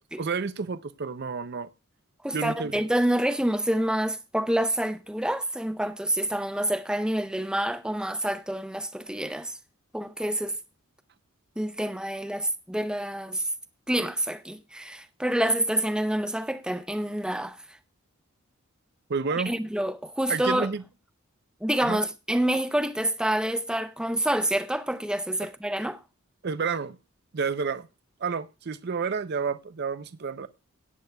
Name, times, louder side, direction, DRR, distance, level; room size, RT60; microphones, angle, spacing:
voice 1, 0.2-1.7 2.3-2.7 19.1-19.5 20.3-20.8 21.9-22.0 26.4-27.0 27.3-27.9 28.2-30.5, right 5 dB, 50° right, 0.5 m, -30 dB
voice 2, 2.2-9.6 9.9-10.6 11.6-13.5 13.9-17.8 19.5-20.7 21.6-26.0, right 1 dB, 5° right, 0.6 m, -27 dB
17.0 x 9.5 x 2.2 m
head